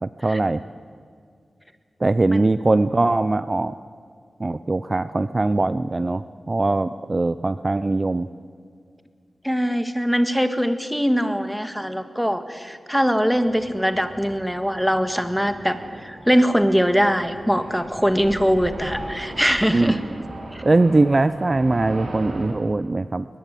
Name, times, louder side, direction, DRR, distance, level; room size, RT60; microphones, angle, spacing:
voice 1, 0.0-0.6 2.0-3.7 4.4-8.3 19.7-20.1 20.6-23.3, right 2 dB, 35° right, 14 dB, 0.6 m, -21 dB
voice 2, 9.4-20.0 20.5-20.6, equal, ahead, 9 dB, 1.7 m, -22 dB
sound 1, 13.3-22.5, right 2 dB, 75° right, 4.4 m, -38 dB
22.0 x 20.0 x 9.2 m, 2.2 s
wide cardioid pair, 100°, 0 cm